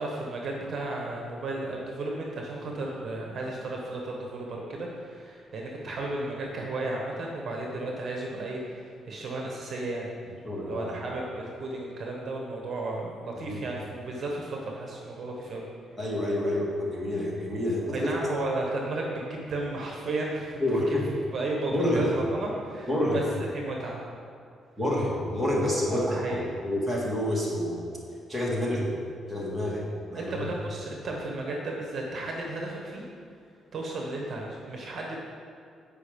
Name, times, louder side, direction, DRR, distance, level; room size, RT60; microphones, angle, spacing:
voice 1, 0.0-10.1 10.6-15.6 17.9-20.6 21.3-23.2 23.5-24.0 25.9-26.4 28.7-28.8 30.1-33.0 33.7-35.2, right 2 dB, 50° right, -1 dB, 1.2 m, -34 dB
voice 2, 10.4-10.9 13.5-13.6 16.0-18.1 20.6-21.0 21.7-22.1 22.9-23.2 24.8-27.9 28.3-28.9 29.3-30.5, left 1 dB, 5° right, -5 dB, 2.2 m, -28 dB
8.3 x 5.2 x 5.2 m, 2.4 s
cardioid pair, 90°, 0 cm